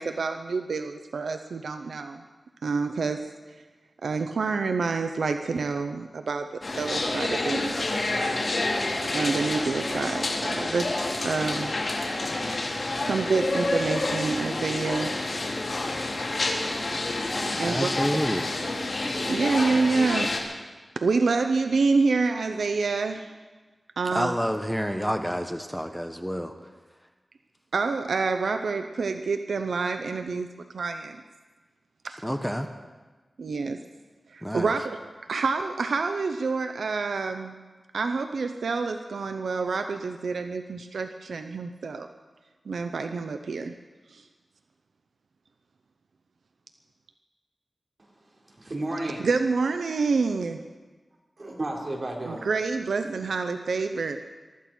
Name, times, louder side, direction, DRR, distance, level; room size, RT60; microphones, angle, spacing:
voice 1, 0.0-2.2 2.6-3.3 4.0-7.8 9.0-11.0 11.2-11.7 12.4-12.8 13.1-15.1 17.6-17.9 19.0-20.4 21.0-23.3 24.0-24.3 27.7-30.5 30.7-31.2 32.0-32.2 33.4-33.8 34.3-35.0 35.3-37.6 37.9-42.1 42.7-43.7 44.1-44.2 49.2-50.6 52.3-54.2, right 4 dB, 90° right, 7 dB, 0.7 m, -27 dB
sound 1, 6.6-20.4, left 2 dB, 55° left, 3.2 m, -28 dB
voice 2, 17.5-18.4 24.0-26.5 32.2-32.7 34.4-34.7, equal, ahead, 6 dB, 1.1 m, -29 dB
voice 3, 48.0-49.3 51.4-52.4, right 1 dB, 50° right, -1 dB, 3.9 m, -33 dB
23.0 x 13.5 x 4.4 m, 1.3 s
wide cardioid pair, 60°, 0 cm